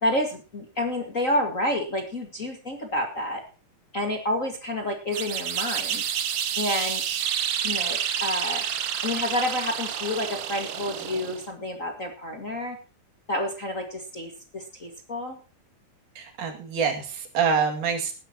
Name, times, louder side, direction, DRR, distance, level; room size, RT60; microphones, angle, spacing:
voice 1, 0.0-3.4 3.9-6.0 6.6-7.0 7.6-8.6 9.0-12.8 13.3-15.4, left 1 dB, 30° left, 3 dB, 1.7 m, -29 dB
sound 1, 5.1-11.5, right 9 dB, 60° right, 1.8 m, -29 dB
voice 2, 16.2-18.1, right 6 dB, 75° right, 4 dB, 3.8 m, -26 dB
20.0 x 11.0 x 2.9 m, 0.35 s
omnidirectional pair, 3.6 m